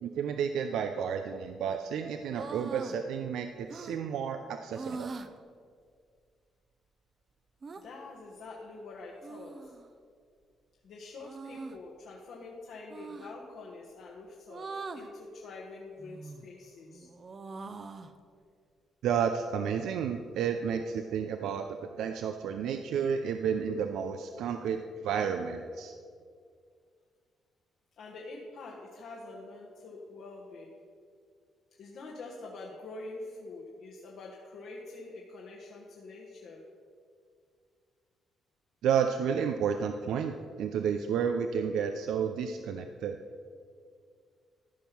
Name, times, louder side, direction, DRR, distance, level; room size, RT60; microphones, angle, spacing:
voice 1, 0.0-5.1 19.0-21.6 22.0-25.9 38.8-43.2, right 7 dB, 80° right, 7 dB, 0.5 m, -31 dB
sound 1, 2.3-3.0 3.7-4.0 4.7-5.3 7.6-7.8 9.2-9.9 11.2-11.8 12.9-13.3 14.5-15.1 16.0-16.5 16.9-18.1, right 4 dB, 40° right, 0.7 m, -42 dB
voice 2, 7.7-9.7 10.8-17.1 28.0-30.8 31.8-36.6, left 3 dB, 70° left, -3 dB, 1.3 m, -46 dB
14.0 x 5.4 x 5.9 m, 2.2 s
cardioid pair, 90°, 0 cm